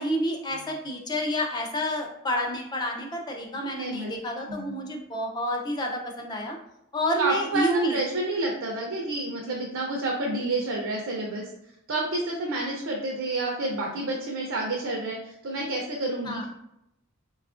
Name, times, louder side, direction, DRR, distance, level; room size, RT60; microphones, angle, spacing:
voice 1, 0.0-6.6 6.9-8.0 16.2-16.4, equal, 20° left, 1 dB, 0.4 m, -29 dB
voice 2, 3.7-4.1 4.5-4.7 7.2-11.5 11.9-16.4, right 2 dB, 60° right, -1 dB, 0.5 m, -29 dB
4.2 x 2.3 x 2.4 m, 0.82 s
head